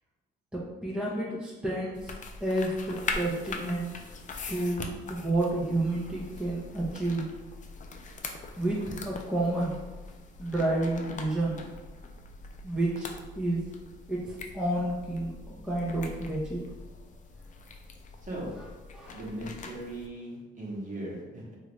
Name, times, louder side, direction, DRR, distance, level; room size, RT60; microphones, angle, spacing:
voice 1, 0.5-2.2 2.4-3.9 4.5-7.3 8.6-9.8 10.4-11.6 12.6-13.1 13.4-13.6 14.1-15.3 15.6-16.6 18.9-19.2, right 1 dB, 5° right, -5 dB, 0.6 m, -30 dB
sound 1, 1.9-20.1, left 4 dB, 40° left, 0.4 m, -42 dB
voice 2, 18.2-18.5 19.1-21.6, right 1 dB, 40° right, -4 dB, 1.1 m, -38 dB
3.0 x 2.5 x 3.0 m, 1.2 s
cardioid pair, 90°, 20 cm